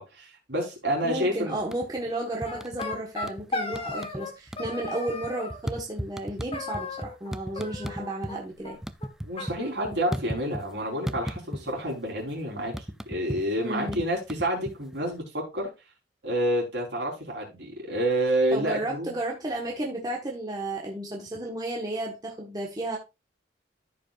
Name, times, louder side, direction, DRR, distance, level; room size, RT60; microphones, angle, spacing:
voice 1, 0.0-1.6 9.2-12.7 13.1-15.7 16.2-19.1, right 1 dB, 65° right, 4.0 m, -28 dB
voice 2, 1.0-8.8 13.6-14.0 18.5-23.0, right 1 dB, 20° right, 1.4 m, -33 dB
sound 1, 1.6-2.1 2.4-3.5 3.7-4.2 4.5-8.4 8.7-10.7 11.1-11.9 12.2-15.1, equal, 5° right, 0.3 m, -35 dB
sound 2, 2.4-4.3 4.6-5.6 6.5-7.3 7.6-8.4 8.6-8.7 9.0-9.1 9.4-10.4, left 3 dB, 30° left, 1.7 m, -36 dB
14.0 x 5.3 x 2.5 m
head